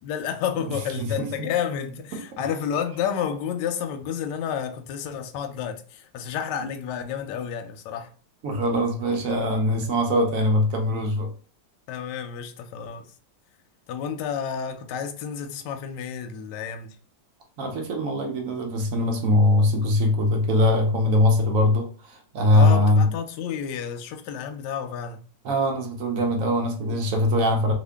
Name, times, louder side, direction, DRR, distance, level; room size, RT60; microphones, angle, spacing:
voice 1, 0.0-8.1 11.9-13.1 13.9-17.0 22.5-25.2, left 8 dB, 75° left, 1.1 m, -30 dB
voice 2, 1.0-1.5 2.1-2.2 8.4-11.3 17.6-23.0 25.4-27.7, left 1 dB, 65° right, 0.8 m, -22 dB
2.8 x 2.7 x 3.3 m
omnidirectional pair, 2.1 m